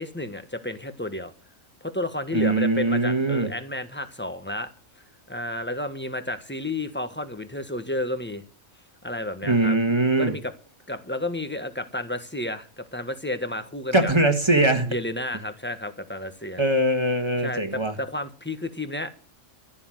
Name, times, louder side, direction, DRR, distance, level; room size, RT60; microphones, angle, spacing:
voice 1, 0.0-1.3 1.8-4.7 5.3-8.4 9.0-9.8 10.2-10.5 10.9-14.1 14.9-16.6 17.4-19.1, left 1 dB, 10° left, 1.3 m, -31 dB
voice 2, 2.3-3.5 9.5-10.3 13.9-14.9 16.6-17.9, right 2 dB, 20° right, 1.8 m, -21 dB
14.5 x 7.0 x 9.2 m
omnidirectional pair, 1.4 m